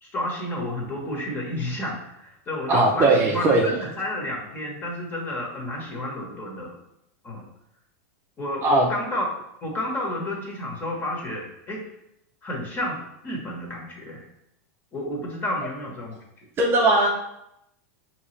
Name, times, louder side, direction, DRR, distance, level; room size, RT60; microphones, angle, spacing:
voice 1, 0.0-6.8 7.2-7.5 8.4-9.2 9.6-11.8 12.4-14.2 14.9-16.5, left 1 dB, 25° left, -1 dB, 1.2 m, -31 dB
voice 2, 2.7-3.7 8.6-8.9 16.6-17.1, right 2 dB, 25° right, 0 dB, 0.6 m, -19 dB
5.2 x 2.9 x 3.2 m, 0.81 s
supercardioid pair, 135°, 8 cm